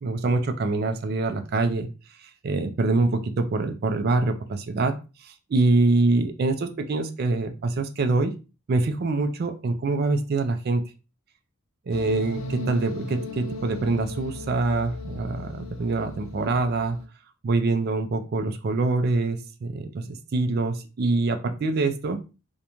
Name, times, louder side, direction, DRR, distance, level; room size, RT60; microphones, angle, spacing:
voice 1, 0.0-1.9 2.2-8.3 8.7-10.8 11.9-17.0 17.4-22.2, right 3 dB, 50° right, 7 dB, 0.4 m, -25 dB
sound 1, 11.9-17.1, left 1 dB, 85° left, 0.5 m, -37 dB
2.5 x 2.2 x 2.9 m, 0.31 s
head